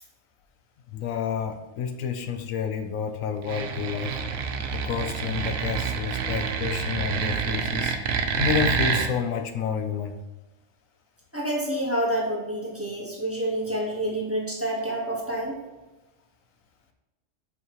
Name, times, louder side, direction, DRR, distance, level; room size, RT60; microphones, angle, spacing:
voice 1, 0.9-4.2 4.7-10.2, left 7 dB, 85° left, 8 dB, 1.0 m, -30 dB
sound 1, 3.4-9.1, right 6 dB, 75° right, 1.0 m, -27 dB
voice 2, 11.3-15.6, right 1 dB, 10° right, -4 dB, 1.3 m, -28 dB
5.6 x 5.6 x 3.0 m, 1.1 s
omnidirectional pair, 1.4 m